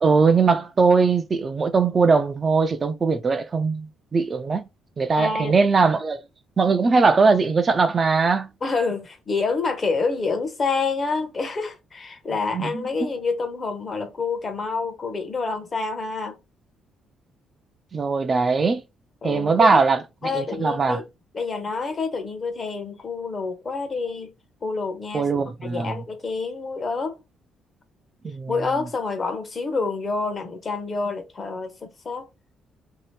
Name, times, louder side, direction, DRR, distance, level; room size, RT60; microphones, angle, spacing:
voice 1, 0.0-4.7 5.0-6.2 6.6-8.5 12.5-13.1 17.9-18.8 19.2-20.0 20.3-21.0 25.1-25.9 28.2-28.5, right 4 dB, 30° right, 0.4 m, -20 dB
voice 2, 5.2-5.6 8.6-16.4 19.2-19.8 20.2-21.0 21.3-24.3 24.6-25.3 25.7-27.2 28.5-32.3, left 4 dB, 30° left, 0.7 m, -27 dB
2.7 x 2.5 x 3.1 m
cardioid pair, 135°, 0 cm